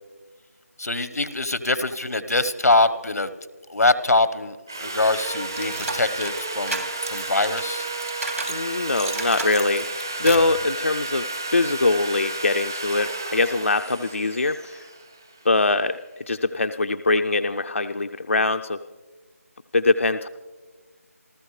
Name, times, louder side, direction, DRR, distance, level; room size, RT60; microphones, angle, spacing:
voice 1, 0.8-3.3 3.7-6.8 7.1-7.9, left 2 dB, 85° left, 14 dB, 1.1 m, -23 dB
Sawing, 4.7-15.7, right 2 dB, 15° right, 0.6 m, -32 dB
sound 1, 5.1-8.6 9.0-10.6, right 2 dB, 70° right, 2.5 m, -33 dB
voice 2, 8.5-9.8 10.2-14.8 15.4-16.0 16.3-18.8 19.7-20.3, left 3 dB, 55° left, 9 dB, 0.4 m, -22 dB
28.5 x 13.5 x 3.2 m, 1.4 s
figure-of-eight pair, 180°, 8 cm